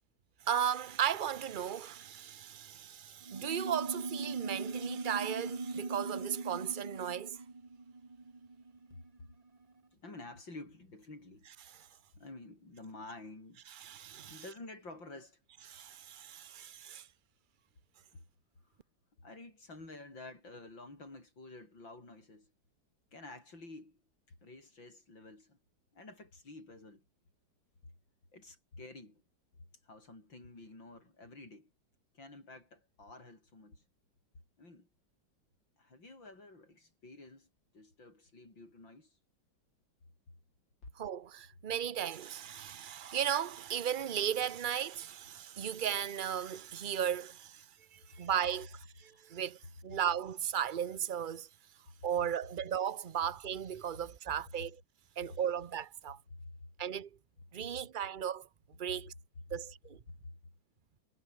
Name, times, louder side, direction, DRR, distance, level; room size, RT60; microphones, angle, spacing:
voice 1, 0.5-7.4 13.8-14.4 15.7-17.1 41.0-47.6 47.9-49.6 49.8-51.5 52.0-54.8 55.2-56.2 56.8-57.1 57.5-58.5 58.8-59.1 59.5-60.0, right 9 dB, 45° right, 0.7 m, -36 dB
sound 1, 3.2-9.2, right 3 dB, 20° right, 1.4 m, -40 dB
voice 2, 8.9-9.3 9.9-11.5 12.2-13.6 14.3-15.4 18.1-18.2 19.2-22.5 23.1-24.0 24.4-25.6 25.9-27.0 28.3-29.2 29.8-31.7 32.1-33.8 34.6-34.9 35.8-37.5 37.7-39.2 40.8-40.9 48.1-48.3 49.0-49.3 56.3-56.4 60.1-60.3, left 2 dB, 80° left, 8.3 m, -51 dB
omnidirectional pair, 2.0 m